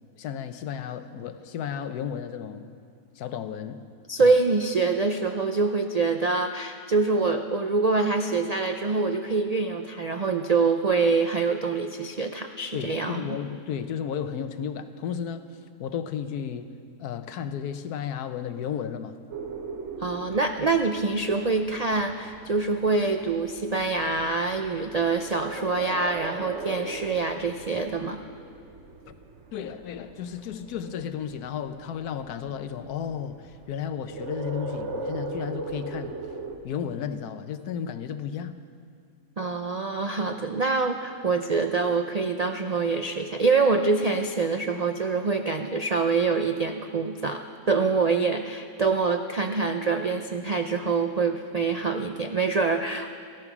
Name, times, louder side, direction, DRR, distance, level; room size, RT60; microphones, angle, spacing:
voice 1, 0.2-2.7 3.2-3.8 4.2-4.3 12.7-15.5 15.8-16.7 17.0-19.2 29.1-29.2 29.5-36.2 36.6-38.5, left 8 dB, 75° left, 1.3 m, -33 dB
voice 2, 4.1-13.4 20.0-28.2 39.4-53.1, right 4 dB, 85° right, 0.3 m, -25 dB
sound 1, 19.3-36.6, right 3 dB, 50° right, 1.2 m, -39 dB
15.5 x 13.5 x 6.0 m
omnidirectional pair, 1.7 m